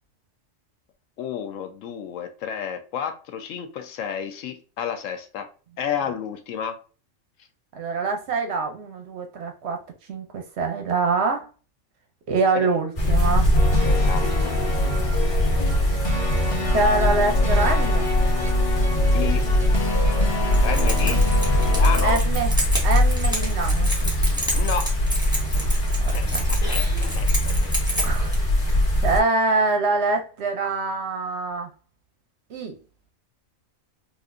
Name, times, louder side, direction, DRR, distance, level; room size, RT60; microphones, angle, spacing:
voice 1, 1.2-5.5 5.8-6.8 12.5-12.7 13.8-14.5 19.1-19.4 20.6-21.2 21.6-22.2 24.5-24.9 26.1-27.7, left 8 dB, 75° left, 0.9 m, -31 dB
voice 2, 7.7-9.8 10.1-11.5 12.3-13.5 16.7-18.1 22.0-22.5 22.8-24.1 26.0-26.5 28.0-28.4 29.0-31.7 32.5-32.8, right 3 dB, 60° right, 0.8 m, -25 dB
sound 1, 13.0-29.2, left 1 dB, 45° left, 1.5 m, -21 dB
sound 2, 13.5-22.1, left 3 dB, 25° left, 0.9 m, -29 dB
Keys jangling, 20.4-28.4, equal, 5° right, 0.9 m, -30 dB
4.0 x 2.5 x 2.4 m
omnidirectional pair, 1.4 m